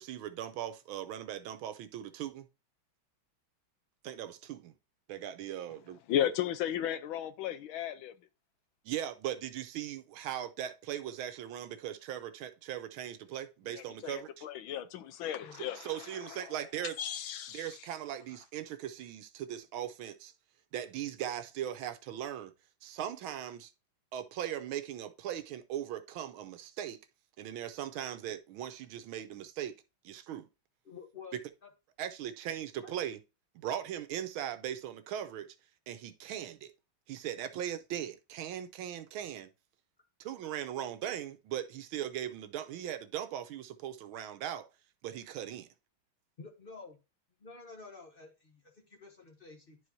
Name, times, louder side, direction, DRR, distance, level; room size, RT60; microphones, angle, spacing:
voice 1, 0.0-2.5 4.0-4.7 5.1-6.3 8.8-14.5 15.5-17.0 17.5-20.3 20.7-22.5 22.8-23.7 24.1-27.0 27.4-29.8 30.0-30.5 32.0-33.2 33.5-35.5 35.9-36.7 37.1-39.5 40.2-44.7 45.0-45.7, right 10 dB, 85° right, 1.5 m, -39 dB
voice 2, 6.1-8.1 13.7-15.9 16.3-16.4 17.0-17.7, left 10 dB, 80° left, 1.4 m, -35 dB
voice 3, 30.8-31.3 32.8-32.9 46.4-47.0 47.4-49.8, left 4 dB, 35° left, 1.0 m, -50 dB
10.5 x 4.7 x 2.7 m
omnidirectional pair, 2.2 m